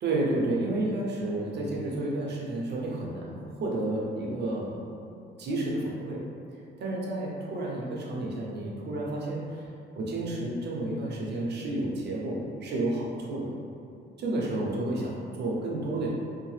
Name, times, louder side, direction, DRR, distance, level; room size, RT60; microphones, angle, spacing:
voice 1, 0.0-4.8 5.1-6.2 6.8-9.7 10.0-13.5 14.2-16.1, right 2 dB, 60° right, -3 dB, 0.6 m, -31 dB
2.7 x 2.0 x 3.2 m, 2.6 s
cardioid pair, 90°, 20 cm